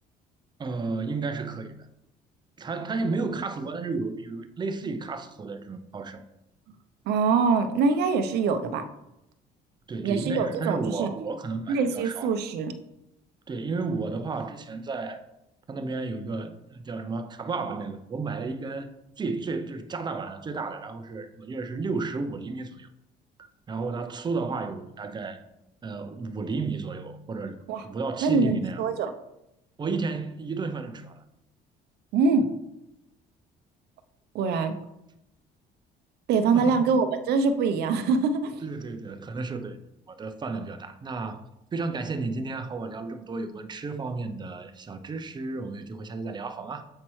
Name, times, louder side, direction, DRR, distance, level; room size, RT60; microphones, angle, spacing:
voice 1, 0.6-1.8 2.6-6.2 9.9-12.3 13.5-15.2 15.7-22.9 23.7-25.4 25.8-28.8 29.8-31.2 36.5-36.9 38.6-39.8 40.1-41.4 41.7-46.8, right 4 dB, 25° right, 0.6 m, -32 dB
voice 2, 7.1-8.8 10.0-11.1 11.7-12.7 27.7-27.8 28.2-29.1 32.1-32.5 34.3-34.7 36.3-38.6, right 4 dB, 75° right, 0.6 m, -24 dB
7.4 x 4.2 x 3.1 m
cardioid pair, 110°, 17 cm